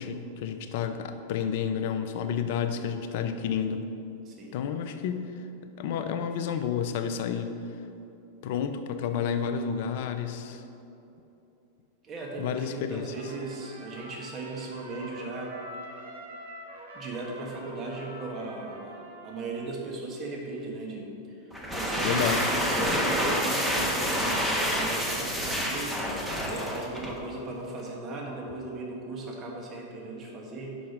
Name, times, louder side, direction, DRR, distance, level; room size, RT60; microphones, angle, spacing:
voice 1, 0.0-3.9 4.5-5.5 5.8-7.6 8.4-10.6 12.4-13.1 22.0-22.5, left 7 dB, 60° left, 8 dB, 0.5 m, -30 dB
voice 2, 4.2-4.6 12.0-15.6 16.9-19.0 19.2-30.9, right 2 dB, 35° right, -1 dB, 1.4 m, -37 dB
Trumpet, 13.1-19.9, right 1 dB, 75° right, 1.1 m, -45 dB
sound 1, 21.5-27.2, equal, 5° right, 1.1 m, -28 dB
5.9 x 5.1 x 5.9 m, 2.9 s
hypercardioid pair, 100°, 0 cm